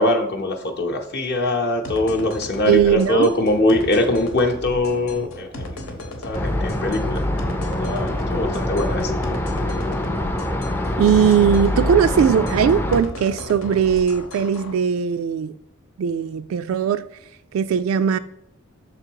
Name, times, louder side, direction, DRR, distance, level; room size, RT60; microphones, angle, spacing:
voice 1, 0.0-5.8 6.2-7.2 7.8-9.1, left 1 dB, 50° left, 0.8 m, -22 dB
sound 1, 1.8-14.7, left 1 dB, 90° left, 1.1 m, -35 dB
voice 2, 2.7-3.3 11.0-15.5 16.0-17.1 17.5-18.2, right 7 dB, 70° right, 0.3 m, -19 dB
sound 2, 6.3-13.0, left 1 dB, 10° left, 0.4 m, -24 dB
6.0 x 3.8 x 4.6 m
head